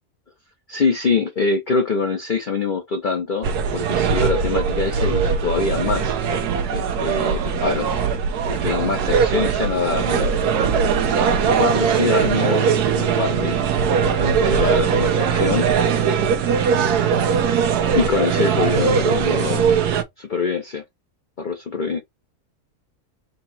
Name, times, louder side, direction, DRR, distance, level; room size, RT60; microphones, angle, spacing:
voice 1, 0.7-6.1 6.7-8.0 8.5-10.4 11.4-13.6 14.2-15.7 17.9-19.7 20.2-20.8 21.4-22.0, left 4 dB, 45° left, 0.6 m, -24 dB
sound 1, 3.4-20.0, right 6 dB, 85° right, 1.3 m, -20 dB
4.0 x 2.9 x 4.1 m
omnidirectional pair, 1.6 m